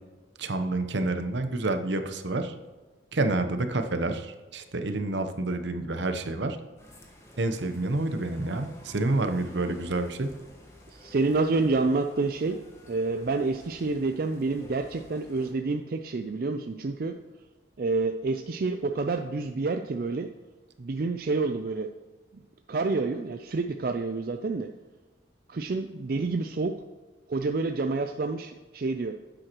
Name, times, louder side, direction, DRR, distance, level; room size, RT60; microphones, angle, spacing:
voice 1, 0.4-2.5 3.1-6.6 7.4-10.3, right 2 dB, 75° right, 8 dB, 0.8 m, -28 dB
sound 1, 6.8-15.5, left 1 dB, 15° left, 1.2 m, -51 dB
voice 2, 10.9-12.6 12.9-17.2 17.8-20.3 20.8-21.9 22.7-24.7 25.5-26.8 27.3-29.1, right 3 dB, 50° right, 6 dB, 0.4 m, -28 dB
10.5 x 7.8 x 3.0 m, 1.3 s
head